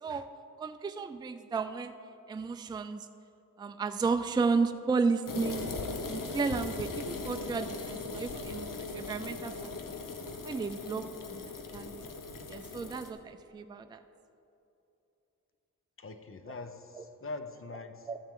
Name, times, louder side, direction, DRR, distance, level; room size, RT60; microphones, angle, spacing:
voice 1, 0.6-1.9 2.3-3.1 3.6-5.7 6.1-10.0 10.4-12.0 12.5-14.0 17.0-17.1 18.1-18.2, right 4 dB, 15° right, 8 dB, 0.3 m, -33 dB
sound 1, 5.3-13.1, left 3 dB, 75° left, 0.9 m, -39 dB
voice 2, 16.0-18.1, left 3 dB, 40° left, 8 dB, 0.7 m, -43 dB
13.0 x 8.8 x 3.7 m, 2.8 s
wide cardioid pair, 85°, 33 cm